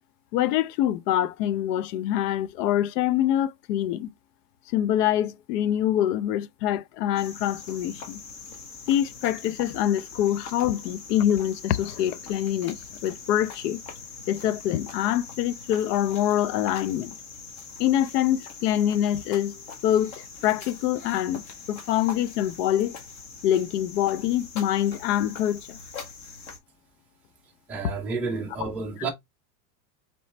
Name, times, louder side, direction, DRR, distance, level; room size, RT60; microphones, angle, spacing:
voice 1, 0.3-4.1 4.7-8.2 8.9-13.8 14.3-17.1 17.8-21.4 21.7-23.0 23.4-25.8, left 11 dB, 75° left, 0.6 m, -25 dB
Cricket, 7.2-26.6, left 5 dB, 35° left, 1.0 m, -42 dB
voice 2, 27.7-29.1, right 4 dB, 5° right, 0.3 m, -30 dB
4.1 x 3.1 x 3.1 m
supercardioid pair, 150°, 48 cm